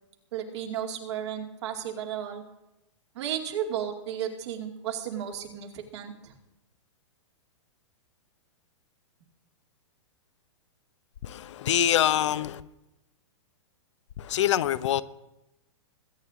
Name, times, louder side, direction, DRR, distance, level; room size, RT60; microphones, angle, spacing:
voice 1, 0.3-2.4 3.1-6.3, right 9 dB, 60° right, 2.5 m, -34 dB
voice 2, 11.2-12.6 14.2-15.0, left 11 dB, 65° left, 0.8 m, -25 dB
21.5 x 9.3 x 3.7 m
hypercardioid pair, 135°, 16 cm